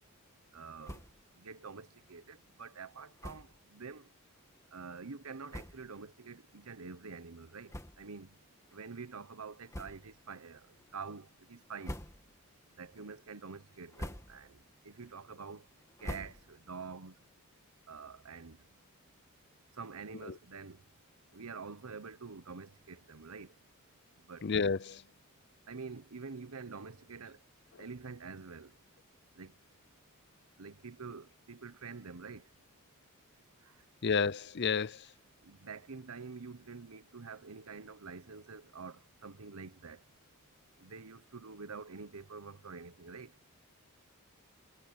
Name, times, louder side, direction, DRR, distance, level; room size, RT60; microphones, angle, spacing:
voice 1, 0.5-1.0 1.4-4.1 4.7-8.3 8.7-10.6 10.9-12.0 12.8-14.6 14.8-15.6 16.0-17.1 17.9-18.6 19.8-20.8 21.3-23.5 24.3-24.4 25.7-27.4 27.8-28.7 29.4-29.5 30.6-32.4 35.4-40.0 40.8-43.3, right 4 dB, 85° right, 1.1 m, -47 dB
sound 1, 0.8-1.3 1.6-1.7 2.0-2.2 3.2-3.6 4.3-4.5 5.1-5.2 5.5-6.0 6.6-6.7 7.7-8.3 8.7-8.8 9.7-10.3 10.7-11.2 11.6-12.5 12.9-13.3 13.7-14.6 14.9-16.8, equal, 15° left, 2.3 m, -46 dB
voice 2, 24.4-25.0 34.0-35.0, left 5 dB, 50° left, 0.6 m, -30 dB
head